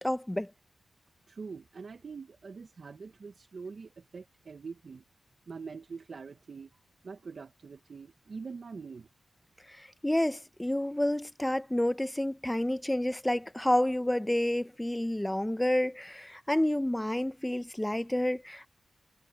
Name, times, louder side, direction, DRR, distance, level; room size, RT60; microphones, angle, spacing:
voice 1, 0.0-0.5 9.7-18.7, left 1 dB, 10° left, 0.5 m, -29 dB
voice 2, 1.3-5.0 5.5-6.7 7.0-9.1, right 5 dB, 55° right, 0.9 m, -44 dB
wide cardioid pair, 140°, 0 cm